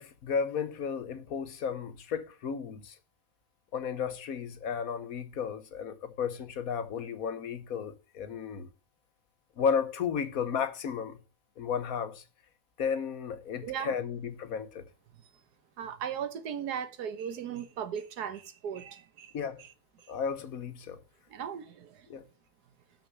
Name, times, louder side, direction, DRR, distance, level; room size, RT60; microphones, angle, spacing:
voice 1, 0.0-3.0 3.7-8.7 9.6-11.2 11.6-12.2 12.8-14.9 19.3-19.6 20.1-21.0 22.1-22.2, left 6 dB, 65° left, 1.4 m, -33 dB
voice 2, 13.6-13.9 15.8-19.3 19.6-19.7 20.0-20.1 21.3-22.3, right 8 dB, 90° right, 1.5 m, -37 dB
6.9 x 6.5 x 7.3 m
omnidirectional pair, 1.6 m